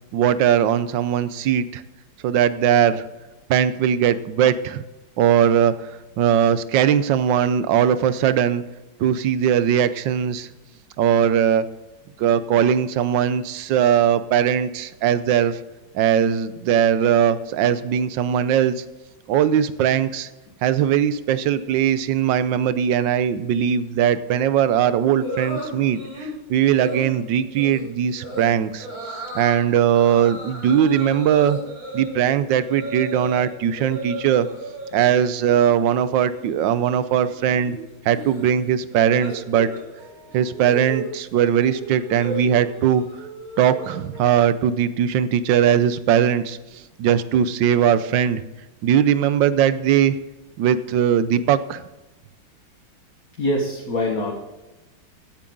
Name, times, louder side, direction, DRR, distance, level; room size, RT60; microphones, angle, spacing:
voice 1, 0.1-1.8 2.2-3.0 3.5-4.8 5.2-5.7 6.2-8.6 9.0-10.5 11.0-11.7 12.2-15.6 15.9-18.8 19.3-20.3 20.6-28.9 29.3-31.6 31.9-34.5 34.9-37.8 38.0-39.7 40.3-43.0 43.6-46.6 47.0-48.4 48.8-50.2 50.6-51.8, right 9 dB, 70° right, 14 dB, 1.3 m, -19 dB
sound 1, 25.2-26.3 26.7-27.1 27.6-27.8 28.2-28.5 28.8-29.6 29.9-33.4 33.7-35.0 35.3-35.7 36.0-44.2, right 1 dB, 40° right, 5.3 m, -35 dB
voice 2, 40.0-40.5 44.1-44.5 53.4-54.4, left 1 dB, 45° left, 0 dB, 1.9 m, -26 dB
15.5 x 8.6 x 3.9 m, 1.1 s
omnidirectional pair, 2.3 m